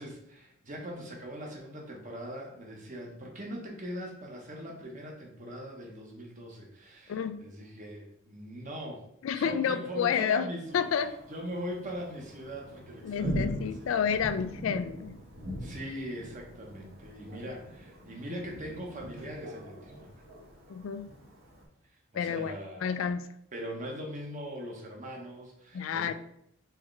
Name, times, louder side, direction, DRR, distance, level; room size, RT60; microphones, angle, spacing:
voice 1, 0.0-10.9 11.3-13.9 15.6-20.2 22.1-23.1 23.5-26.1, equal, 40° right, 0 dB, 1.0 m, -41 dB
voice 2, 7.1-7.4 9.2-10.5 10.7-11.1 13.0-15.2 20.7-21.1 22.1-23.3 25.7-26.1, left 7 dB, 70° left, 12 dB, 0.3 m, -30 dB
Thunder, 10.7-21.6, equal, 70° right, 1.4 m, -41 dB
4.7 x 3.4 x 3.2 m, 0.74 s
head